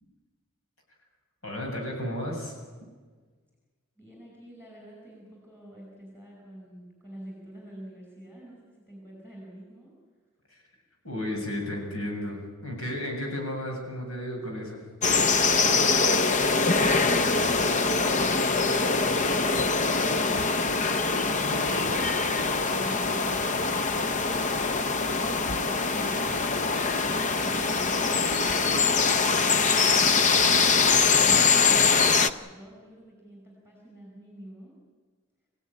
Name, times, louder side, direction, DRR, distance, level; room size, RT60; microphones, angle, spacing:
voice 1, 1.4-2.5 10.5-10.6 11.0-14.8 21.4-21.9, left 1 dB, 70° left, 1 dB, 7.1 m, -33 dB
voice 2, 4.0-9.9 22.5-26.5 27.0-28.2 29.9-34.7, right 1 dB, 5° left, -2 dB, 5.7 m, -46 dB
sound 1, 15.0-32.3, left 4 dB, 35° left, 0.8 m, -23 dB
26.0 x 16.0 x 10.0 m, 1.4 s
head